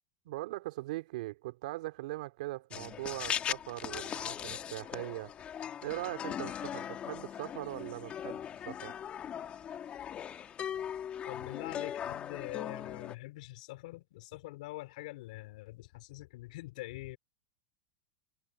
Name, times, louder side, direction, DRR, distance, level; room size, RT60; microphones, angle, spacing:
voice 1, 0.2-5.4 5.8-8.9, right 18 dB, 70° right, 3.0 m, -40 dB
sound 1, 2.7-13.1, left 9 dB, 25° left, 1.9 m, -39 dB
voice 2, 11.3-17.2, left 19 dB, 70° left, 3.6 m, -44 dB
supercardioid pair, 140°, 4 cm